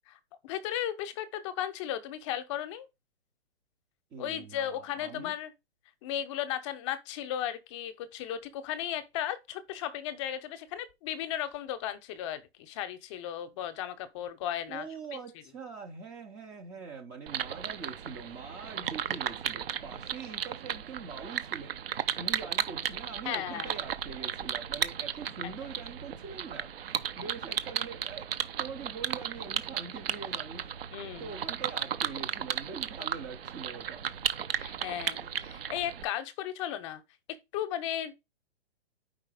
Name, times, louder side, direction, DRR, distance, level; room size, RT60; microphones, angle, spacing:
voice 1, 0.1-2.9 4.2-5.5 6.0-14.9 23.2-23.7 30.9-31.3 34.5-37.0 37.5-38.1, left 11 dB, 30° left, 0.7 m, -35 dB
voice 2, 4.1-5.3 14.7-21.7 22.2-26.7 27.2-28.3 28.6-30.7 31.2-34.1, right 5 dB, 15° right, 0.5 m, -43 dB
sound 1, 17.3-36.0, right 9 dB, 60° right, 0.8 m, -35 dB
4.9 x 4.4 x 4.9 m
hypercardioid pair, 140°, 32 cm